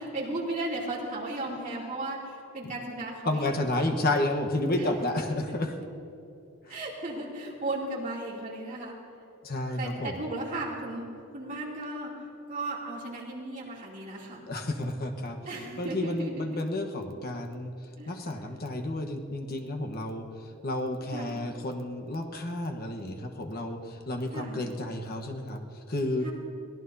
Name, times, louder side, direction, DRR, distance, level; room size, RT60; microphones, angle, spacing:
voice 1, 0.0-3.5 4.7-4.9 5.3-5.4 5.8-5.9 6.7-9.0 9.8-11.1 11.3-12.1 12.5-14.4 15.5-16.4 18.0-18.1 21.0-21.5 24.3-24.7 26.2-26.3, right 2 dB, 35° right, -5 dB, 2.8 m, -35 dB
voice 2, 3.2-5.8 6.6-6.8 9.4-10.2 14.5-15.4 15.8-17.7 18.1-26.3, left 1 dB, 45° left, 4 dB, 1.2 m, -31 dB
23.0 x 17.0 x 2.8 m, 2.7 s
head